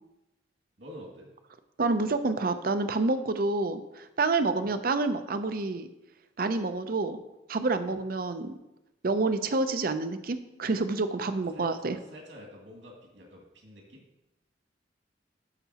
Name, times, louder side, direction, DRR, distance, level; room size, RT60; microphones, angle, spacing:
voice 1, 0.8-1.3 4.6-4.7 7.9-8.0 11.3-14.0, equal, 80° right, -1 dB, 2.3 m, -48 dB
voice 2, 1.8-5.9 6.4-7.2 7.5-8.5 9.0-12.0, right 3 dB, 50° right, 10 dB, 0.5 m, -28 dB
12.5 x 5.8 x 2.9 m, 0.93 s
head